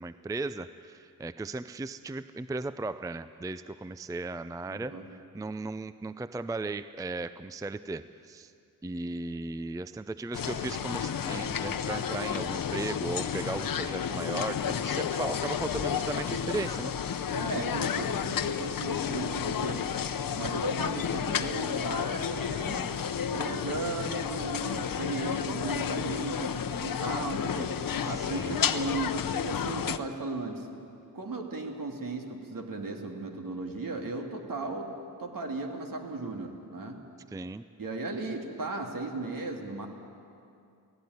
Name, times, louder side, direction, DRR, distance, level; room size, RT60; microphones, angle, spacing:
voice 1, 0.0-8.5 8.8-16.9 28.0-28.6 37.3-37.6, right 2 dB, 10° right, 13 dB, 0.4 m, -36 dB
voice 2, 4.7-5.1 17.3-19.8 20.3-23.0 23.3-27.7 28.0-30.7 31.1-34.9 35.2-37.0 37.8-39.9, right 2 dB, 60° right, 2 dB, 2.7 m, -36 dB
sound 1, 10.3-30.0, left 8 dB, 60° left, 0.8 m, -31 dB
17.0 x 16.5 x 9.6 m, 2.5 s
cardioid pair, 80°, 38 cm